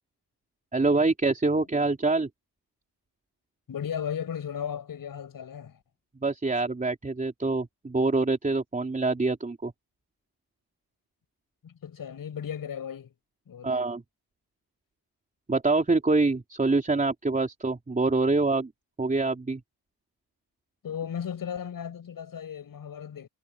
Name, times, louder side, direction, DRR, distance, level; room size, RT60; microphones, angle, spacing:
voice 1, 0.7-2.3 6.2-9.7 13.6-14.0 15.5-18.7 19.0-19.6, right 3 dB, 20° right, 3.9 m, -25 dB
voice 2, 3.7-5.8 11.6-13.1 13.5-13.9 20.8-23.3, left 8 dB, 60° left, 7.0 m, -35 dB
cardioid pair, 125°, 39 cm